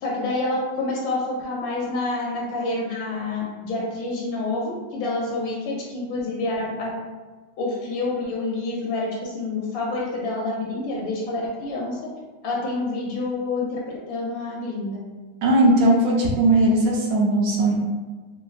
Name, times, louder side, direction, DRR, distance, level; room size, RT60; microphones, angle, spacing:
voice 1, 0.0-6.9 7.6-12.0 12.4-15.0, left 2 dB, 70° left, -3 dB, 0.9 m, -28 dB
voice 2, 15.4-17.8, right 1 dB, 70° right, -2 dB, 0.9 m, -18 dB
3.4 x 2.2 x 2.3 m, 1.3 s
omnidirectional pair, 1.9 m